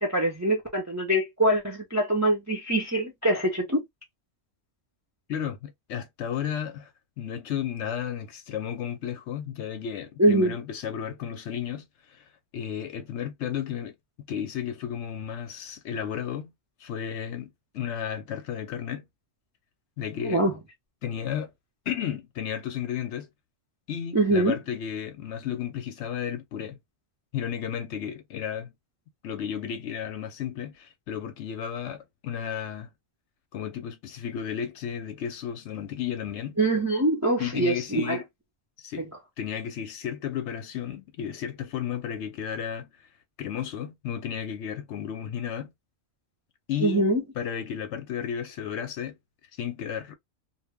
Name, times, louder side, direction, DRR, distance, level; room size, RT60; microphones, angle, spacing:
voice 1, 0.0-3.8 10.2-10.6 20.2-20.5 24.1-24.6 36.6-38.2 46.8-47.2, right 1 dB, 25° right, 0.4 m, -24 dB
voice 2, 5.3-6.9 7.2-14.0 14.3-16.5 16.8-19.0 20.0-20.4 21.0-21.5 21.9-23.3 23.9-26.8 27.3-28.7 29.2-32.9 33.5-36.6 37.4-38.2 38.8-42.9 43.4-45.7 46.7-47.1 47.4-49.1 49.6-50.1, left 9 dB, 70° left, 0.8 m, -33 dB
2.2 x 2.0 x 3.3 m
omnidirectional pair, 1.3 m